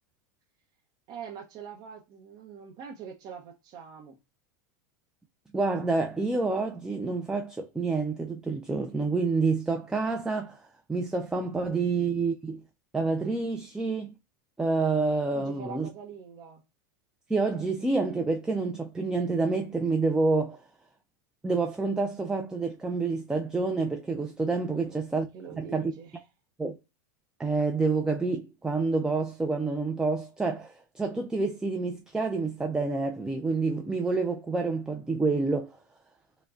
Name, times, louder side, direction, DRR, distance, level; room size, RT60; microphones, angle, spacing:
voice 1, 1.1-4.2 15.3-16.6 24.7-25.0 25.3-26.2, right 7 dB, 45° right, 0.8 m, -44 dB
voice 2, 5.5-12.6 12.9-14.1 14.6-15.9 17.3-20.6 21.4-25.3 25.6-25.9 26.6-26.7 27.4-35.8, right 3 dB, 5° right, 0.5 m, -28 dB
4.7 x 2.2 x 2.4 m
supercardioid pair, 120°, 10 cm